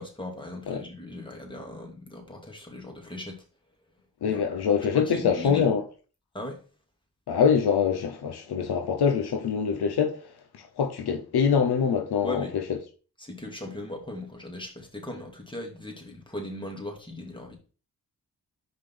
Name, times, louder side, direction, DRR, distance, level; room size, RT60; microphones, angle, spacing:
voice 1, 0.0-3.4 4.3-4.6 4.9-5.7 6.3-6.6 12.2-12.6 13.2-17.6, left 1 dB, 15° left, 2.3 m, -38 dB
voice 2, 4.2-5.8 7.3-10.2 10.5-12.4, left 6 dB, 85° left, 0.9 m, -24 dB
5.2 x 4.1 x 5.4 m
cardioid pair, 50°, 38 cm